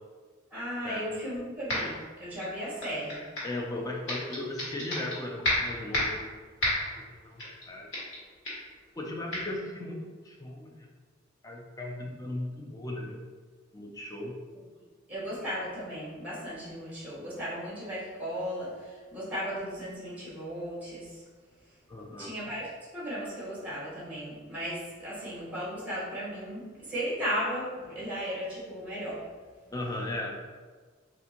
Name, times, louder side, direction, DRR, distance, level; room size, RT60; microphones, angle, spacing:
voice 1, 0.5-3.2 15.1-21.2 21.6-21.8 22.2-29.3 29.6-29.7, equal, 10° right, -8 dB, 1.2 m, -36 dB
sound 1, 1.7-2.0 2.4-3.6 4.1-5.2 5.4-6.2 6.6-7.0 7.4-7.6 7.9-8.2 8.4-8.7 9.3-9.4, left 1 dB, 60° left, 1.5 m, -30 dB
voice 2, 3.4-6.3 7.1-7.9 9.0-10.8 11.4-13.2 13.7-14.3 21.9-22.3 29.7-30.4, left 1 dB, 20° left, -1 dB, 0.4 m, -37 dB
3.5 x 2.5 x 2.9 m, 1.5 s
head